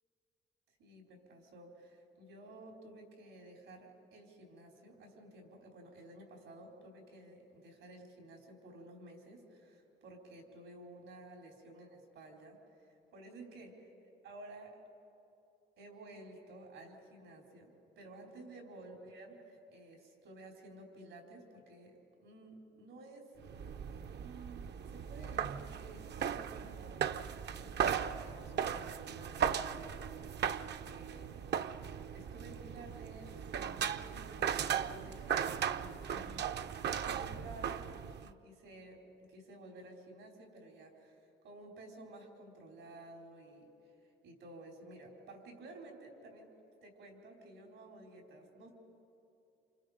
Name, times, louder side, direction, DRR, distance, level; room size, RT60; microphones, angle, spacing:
voice 1, 0.8-13.9 14.2-14.8 15.8-23.3 24.2-31.3 32.1-37.8 38.2-39.0 39.3-43.7 44.0-46.5 46.8-48.7, right 2 dB, 90° right, 1 dB, 4.4 m, -53 dB
sound 1, 23.4-38.3, right 8 dB, 60° right, 0.6 m, -37 dB
29.0 x 27.5 x 5.1 m, 2.8 s
cardioid pair, 90°, 20 cm